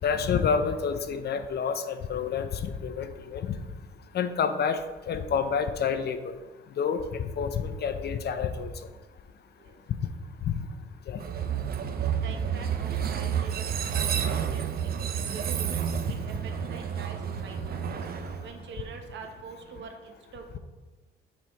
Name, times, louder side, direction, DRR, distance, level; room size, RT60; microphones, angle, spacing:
voice 1, 0.0-2.5 2.8-3.5 4.1-4.8 5.1-6.3 6.8-8.7 10.5-10.6 11.1-11.2, left 6 dB, 55° left, 9 dB, 0.6 m, -28 dB
Train, 11.2-19.2, right 8 dB, 50° right, 0.6 m, -30 dB
voice 2, 12.2-17.6 18.4-20.6, right 5 dB, 65° right, 4 dB, 1.0 m, -45 dB
6.1 x 4.5 x 4.4 m, 1.2 s
cardioid pair, 90°, 20 cm